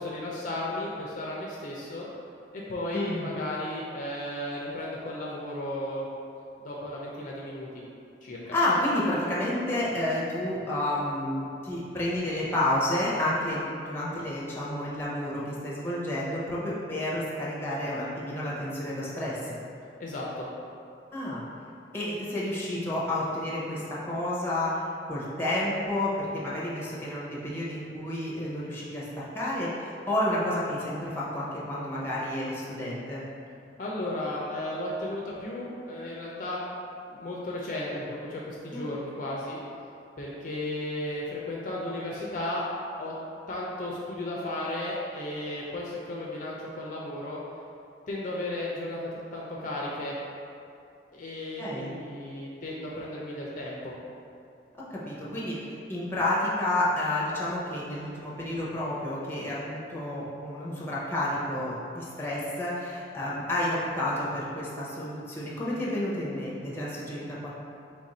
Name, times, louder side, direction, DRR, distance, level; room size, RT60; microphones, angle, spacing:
voice 1, 0.0-2.1 2.5-6.1 6.6-7.7 8.2-8.5 20.0-20.5 33.8-36.6 37.1-39.6 40.2-42.6 43.0-43.1 43.5-47.4 48.1-50.2 51.1-53.9, left 1 dB, 45° left, -4 dB, 0.5 m, -34 dB
voice 2, 2.9-3.3 8.5-19.6 21.1-21.4 21.9-24.8 25.1-33.2 38.7-38.8 51.6-51.9 54.9-67.6, left 1 dB, 15° left, -7 dB, 0.7 m, -30 dB
3.4 x 2.5 x 4.1 m, 2.6 s
head